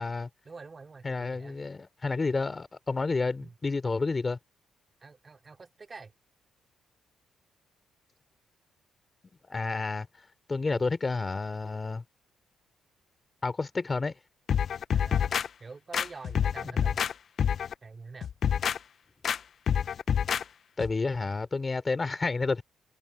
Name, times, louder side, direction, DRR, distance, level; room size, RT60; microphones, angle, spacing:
voice 1, 0.5-1.6 3.4-3.5 5.0-6.1 10.7-10.8 14.9-15.3 15.6-17.0 17.8-18.3, right 4 dB, 30° right, 3.9 m, -46 dB
voice 2, 1.0-4.4 9.5-10.1 10.5-12.0 13.4-14.1 16.6-16.7 20.8-22.6, left 3 dB, 25° left, 3.1 m, -30 dB
sound 1, 14.5-15.5 15.9-17.1 17.4-17.7 18.2-18.8 19.2-19.4 19.7-20.4 20.8-20.9, left 8 dB, 55° left, 0.5 m, -27 dB
cardioid pair, 90°, 0 cm